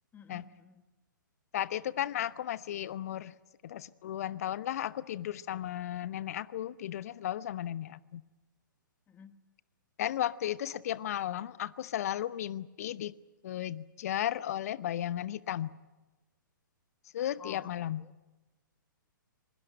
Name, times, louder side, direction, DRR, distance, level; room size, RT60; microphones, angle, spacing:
voice 1, 0.1-0.8 9.1-9.4 17.4-18.1, left 7 dB, 15° left, 1.3 m, -52 dB
voice 2, 1.5-3.3 3.6-8.2 10.0-13.1 13.4-15.7 17.1-18.0, left 11 dB, 45° left, 0.9 m, -35 dB
27.0 x 20.5 x 9.0 m
figure-of-eight pair, 120°, 11 cm